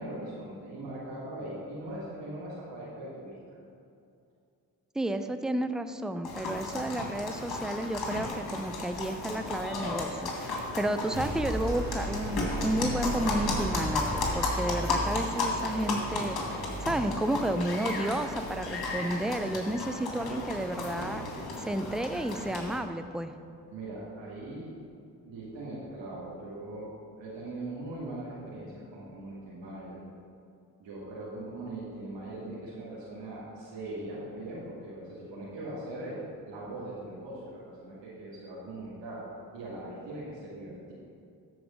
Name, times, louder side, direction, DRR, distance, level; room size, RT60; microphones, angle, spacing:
voice 1, 0.0-3.6 23.7-24.7 25.2-26.9 27.2-30.0 30.8-36.2 36.4-39.2 39.5-40.9, right 1 dB, 70° right, -8 dB, 2.4 m, -40 dB
voice 2, 4.9-16.4 16.8-23.4, right 1 dB, ahead, 9 dB, 0.5 m, -32 dB
sound 1, 6.2-22.8, left 3 dB, 55° left, 2.1 m, -34 dB
sound 2, 10.8-20.6, equal, 50° right, 2.3 m, -37 dB
13.0 x 4.7 x 5.2 m, 2.5 s
hypercardioid pair, 40°, 46 cm